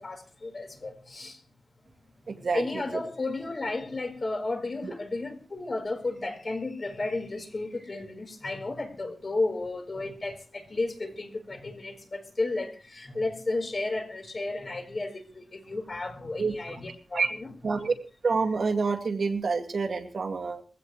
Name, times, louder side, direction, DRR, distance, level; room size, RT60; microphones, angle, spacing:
voice 1, 0.0-1.4 2.5-17.5, left 2 dB, 40° left, 4.3 m, -33 dB
voice 2, 2.3-2.8 4.8-4.9 16.4-16.8 17.1-17.3 17.6-17.9 18.2-20.6, right 4 dB, 65° right, 2.1 m, -28 dB
21.5 x 16.0 x 3.2 m
wide cardioid pair, 120°, 0 cm